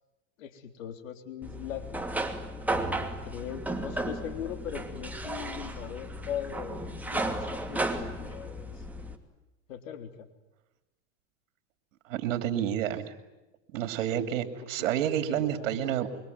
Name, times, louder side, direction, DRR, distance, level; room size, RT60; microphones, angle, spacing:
voice 1, 0.4-2.1 3.0-8.9 9.7-10.3 12.4-13.0 14.0-14.9 15.3-15.8, left 9 dB, 80° left, 7 dB, 3.6 m, -40 dB
sound 1, 1.4-9.2, right 1 dB, 5° right, 2.7 m, -34 dB
voice 2, 12.1-13.1 13.7-16.1, right 11 dB, 75° right, 9 dB, 2.7 m, -29 dB
25.5 x 24.0 x 9.5 m, 1.0 s
supercardioid pair, 120°, 38 cm